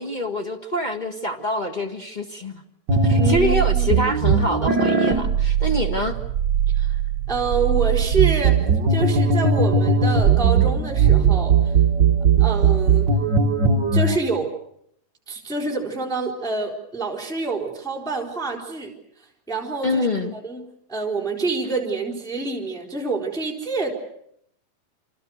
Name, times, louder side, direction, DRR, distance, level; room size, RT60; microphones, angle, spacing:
voice 1, 0.0-2.6 3.0-6.2 19.8-20.3, left 1 dB, 65° left, 4 dB, 0.4 m, -25 dB
sound 1, 2.9-14.2, right 5 dB, 40° right, 1.8 m, -19 dB
voice 2, 3.1-3.9 6.7-7.0 7.3-8.6 8.9-11.7 12.4-13.1 13.9-14.5 15.3-18.9 19.5-20.1 20.3-20.6 20.9-23.9, right 3 dB, ahead, 1 dB, 3.7 m, -27 dB
29.0 x 26.0 x 6.5 m, 0.72 s
omnidirectional pair, 3.9 m